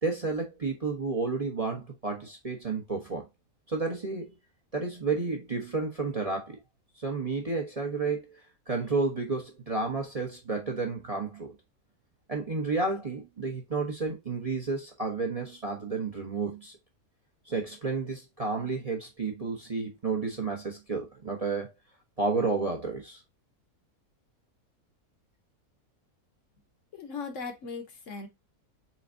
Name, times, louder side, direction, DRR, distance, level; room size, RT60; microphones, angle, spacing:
voice 1, 0.0-3.3 3.7-4.4 4.7-6.6 7.0-8.4 8.7-11.5 12.3-16.7 17.5-21.7 22.2-23.2, right 3 dB, 30° right, 0.9 m, -31 dB
voice 2, 26.9-28.3, left 4 dB, 60° left, 1.2 m, -38 dB
4.3 x 3.8 x 2.5 m
omnidirectional pair, 1.6 m